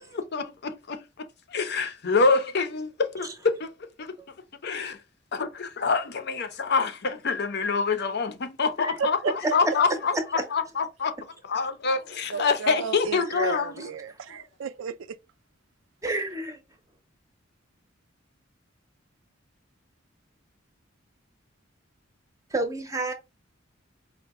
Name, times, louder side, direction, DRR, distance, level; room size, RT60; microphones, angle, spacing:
voice 1, 0.1-1.0 1.5-3.7 4.0-4.2 4.6-5.0 5.3-9.2 9.5-11.1 11.4-13.9 14.3-14.4, left 4 dB, 55° left, 0.6 m, -26 dB
voice 2, 9.0-9.3 12.3-15.2, right 5 dB, 65° right, 0.4 m, -33 dB
voice 3, 16.0-16.6 22.5-23.1, right 2 dB, 15° right, 0.7 m, -29 dB
4.7 x 2.2 x 3.5 m
head